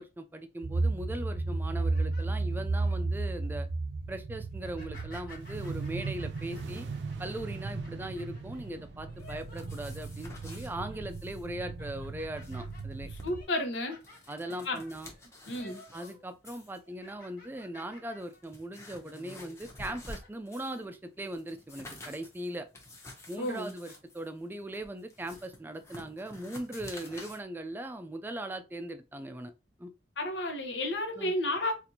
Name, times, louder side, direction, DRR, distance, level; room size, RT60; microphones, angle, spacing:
voice 1, 0.0-3.7 4.1-6.9 7.2-13.1 14.3-15.1 15.9-22.7 23.3-29.5 29.8-29.9 31.2-31.3, right 1 dB, 10° right, 0.3 m, -39 dB
sound 1, 0.6-13.4, right 3 dB, 80° right, 0.5 m, -35 dB
sound 2, 1.6-3.0 3.5-3.8 4.5-10.3 10.6-11.1 11.5-16.3 16.5-18.5 18.9-19.0 19.7-20.3, left 2 dB, 55° left, 1.3 m, -55 dB
sound 3, 9.2-10.7 11.1-11.5 11.7-11.8 12.2-13.3 13.8-16.1 16.4-16.8 17.6-17.7 18.1-20.8 21.2-27.4, left 1 dB, 15° left, 0.8 m, -49 dB
voice 2, 13.2-14.0 14.6-14.8 15.5-15.8 23.4-23.7 30.2-31.7, left 1 dB, 90° left, 1.0 m, -32 dB
4.2 x 2.5 x 2.7 m
head